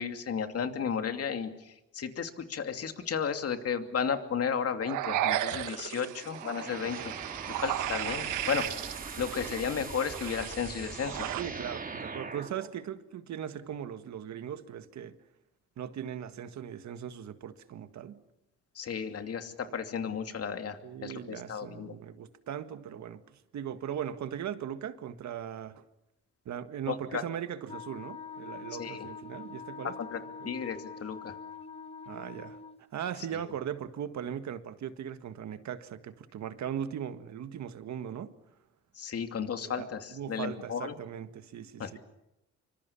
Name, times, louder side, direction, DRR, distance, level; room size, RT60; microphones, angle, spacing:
voice 1, 0.0-7.1 7.6-8.8 9.2-11.3 18.7-21.9 26.9-27.2 28.8-29.1 30.0-31.3 33.3-33.4 39.0-40.9 41.8-42.0, left 7 dB, 50° left, 7 dB, 2.7 m, -34 dB
sound 1, 4.8-11.4, right 12 dB, 90° right, 1.4 m, -35 dB
sound 2, 6.2-12.7, right 4 dB, 30° right, 2.6 m, -42 dB
voice 2, 11.4-15.2 15.8-18.2 20.8-25.8 26.5-29.9 30.4-30.5 32.1-32.6 32.9-38.3 39.6-42.0, right 9 dB, 65° right, 10 dB, 1.8 m, -39 dB
Wind instrument woodwind instrument, 27.7-32.8, left 5 dB, 20° left, 1.3 m, -44 dB
26.5 x 24.5 x 7.2 m, 0.87 s
cardioid pair, 90°, 30 cm